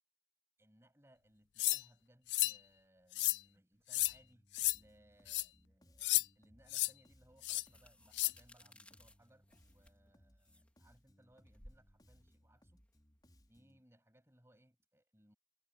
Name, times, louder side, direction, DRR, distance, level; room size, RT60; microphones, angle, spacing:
voice 1, 0.6-12.8 13.5-15.4, right 1 dB, 15° right, 8.0 m, -68 dB
sound 1, 1.6-1.8 2.3-2.6 3.1-3.4 3.9-4.1 4.5-4.8 5.3-5.4 6.0-6.2 6.7-6.9 7.4-7.6 8.1-8.3, left 18 dB, 85° left, 0.5 m, -32 dB
Bass guitar, 4.0-13.8, equal, 25° left, 4.7 m, -68 dB
sound 2, 6.8-13.6, left 1 dB, 10° left, 3.8 m, -63 dB
head